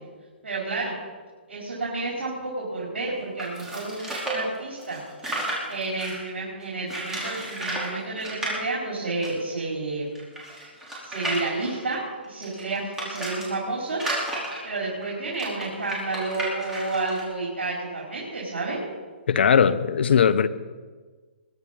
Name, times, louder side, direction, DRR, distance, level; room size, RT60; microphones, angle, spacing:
voice 1, 0.4-1.0 1.5-5.0 5.7-10.1 11.0-14.0 14.6-18.8, right 3 dB, 75° right, 4.8 m, -30 dB
sound 1, 3.4-6.3 6.9-7.9 8.2-8.5 9.2-9.3 9.5-9.6 10.2-13.5 13.9-17.2, right 1 dB, 10° right, 4.7 m, -32 dB
voice 2, 19.3-20.5, left 7 dB, 65° left, 0.9 m, -19 dB
22.0 x 10.0 x 5.5 m
hypercardioid pair, 135°, 6 cm